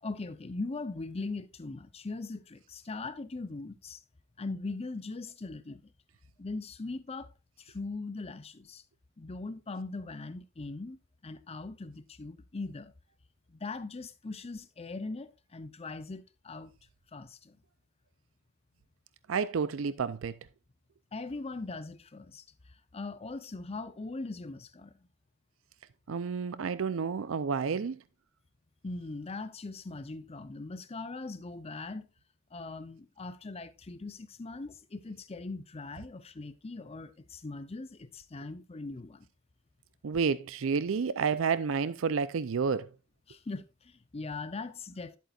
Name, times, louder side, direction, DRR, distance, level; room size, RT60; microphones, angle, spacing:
voice 1, 0.0-4.0 4.4-5.8 6.4-7.3 7.6-8.8 9.2-12.9 13.5-16.7 17.1-17.6 21.1-22.4 22.9-24.9 28.8-32.1 32.5-39.3 43.3-45.2, left 3 dB, 30° left, 0.6 m, -40 dB
voice 2, 19.3-20.3 26.1-28.0 40.0-42.9, right 5 dB, 80° right, 0.5 m, -30 dB
11.0 x 8.2 x 2.4 m
head